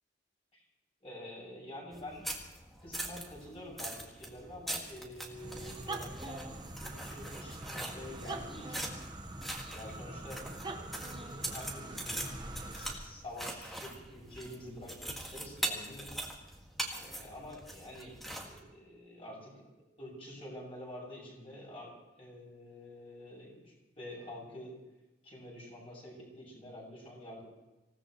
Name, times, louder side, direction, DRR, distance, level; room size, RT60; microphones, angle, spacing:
voice 1, 1.0-2.2 2.8-8.9 9.6-12.2 12.6-16.1 17.0-19.7 20.0-24.7 25.2-27.4, left 1 dB, 30° left, -4 dB, 6.8 m, -48 dB
sound 1, 1.9-18.6, right 1 dB, ahead, 1.9 m, -42 dB
sound 2, 5.3-13.2, right 2 dB, 25° right, 1.2 m, -44 dB
26.0 x 17.0 x 3.1 m, 1.0 s
head